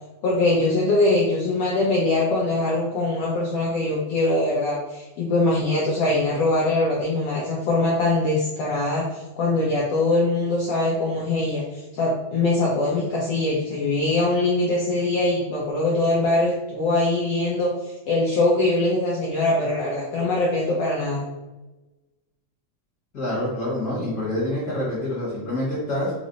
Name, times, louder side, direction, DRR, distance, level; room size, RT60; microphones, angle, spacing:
voice 1, 0.2-11.6 11.9-17.7 18.1-21.3, left 2 dB, 90° left, -5 dB, 1.2 m, -22 dB
voice 2, 23.1-26.1, left 1 dB, 55° left, -8 dB, 1.0 m, -26 dB
5.2 x 2.0 x 3.8 m, 1.1 s
omnidirectional pair, 3.5 m